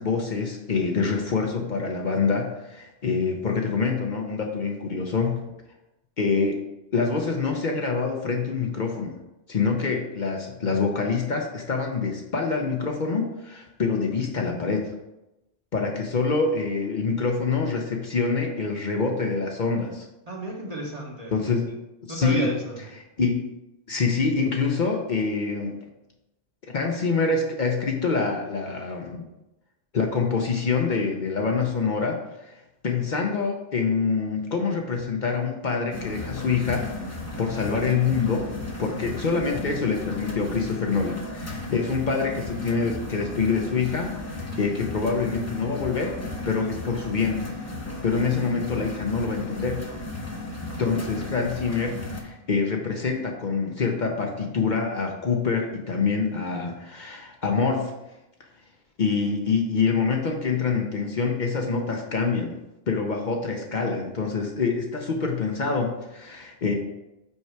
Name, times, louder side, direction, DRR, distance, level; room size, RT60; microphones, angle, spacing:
voice 1, 0.0-5.4 6.2-6.6 6.9-9.2 9.5-14.9 15.7-20.1 21.3-21.7 22.0-22.5 23.2-23.5 23.9-25.7 26.7-29.3 29.9-32.5 32.8-38.5 38.8-46.2 46.5-47.4 48.0-49.8 50.8-57.9 59.0-62.5 62.9-66.7, left 4 dB, 50° left, 2 dB, 0.8 m, -26 dB
voice 2, 20.3-21.3 22.1-22.8, right 1 dB, 40° right, -1 dB, 1.2 m, -32 dB
sound 1, 35.9-52.2, left 2 dB, 15° left, 0.8 m, -34 dB
5.6 x 4.6 x 4.6 m, 0.94 s
omnidirectional pair, 1.1 m